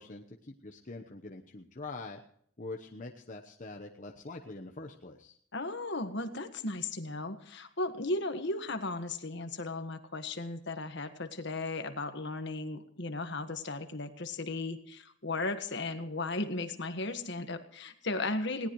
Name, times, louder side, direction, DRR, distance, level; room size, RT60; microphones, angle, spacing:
voice 1, 0.0-2.2 2.6-5.3, left 3 dB, 40° left, 3 dB, 1.0 m, -44 dB
voice 2, 5.5-18.7, left 2 dB, 60° left, 8 dB, 1.5 m, -36 dB
20.5 x 18.0 x 3.1 m, 0.65 s
head